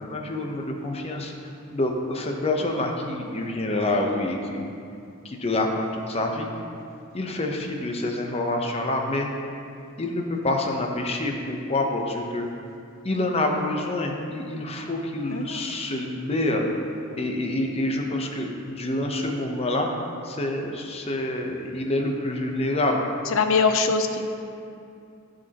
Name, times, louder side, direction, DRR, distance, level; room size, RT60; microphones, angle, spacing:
voice 1, 0.0-1.3 1.7-4.7 5.2-6.5 7.1-9.3 10.0-12.5 13.0-16.7 17.2-19.9 20.2-23.0, left 2 dB, 30° left, 2 dB, 0.8 m, -27 dB
voice 2, 15.3-15.6 23.3-24.2, left 4 dB, 70° left, 6 dB, 0.6 m, -22 dB
15.0 x 5.2 x 2.9 m, 2.5 s
head